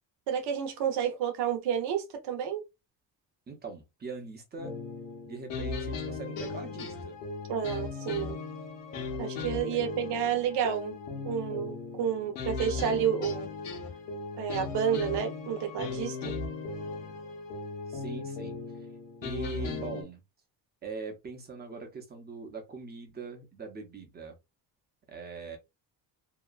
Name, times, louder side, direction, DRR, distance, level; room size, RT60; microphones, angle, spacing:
voice 1, 0.3-2.6 7.5-8.4 9.2-11.0 11.2-13.4 14.4-16.3, right 8 dB, 70° right, 0.9 m, -30 dB
voice 2, 3.5-4.8 5.2-7.2 9.7-9.8 17.9-18.9 19.2-20.2 20.8-24.4 25.1-25.6, right 4 dB, 25° right, 0.8 m, -42 dB
sound 1, 4.6-20.0, left 4 dB, 85° left, 1.1 m, -37 dB
2.8 x 2.3 x 2.4 m
cardioid pair, 145°, 42 cm